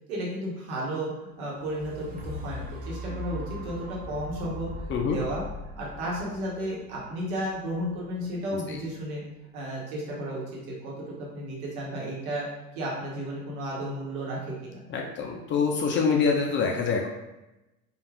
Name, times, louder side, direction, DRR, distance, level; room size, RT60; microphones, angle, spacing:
voice 1, 0.1-1.1 1.4-4.7 5.0-5.4 5.8-9.2 9.5-10.9 11.2-12.5 12.7-14.8, right 1 dB, 70° right, -4 dB, 1.2 m, -33 dB
sound 1, 1.4-9.4 10.0-10.1, left 1 dB, 20° right, 0.6 m, -40 dB
voice 2, 14.9-17.1, left 5 dB, 30° left, 1 dB, 0.4 m, -25 dB
2.4 x 2.4 x 3.3 m, 0.99 s
hypercardioid pair, 70°, 44 cm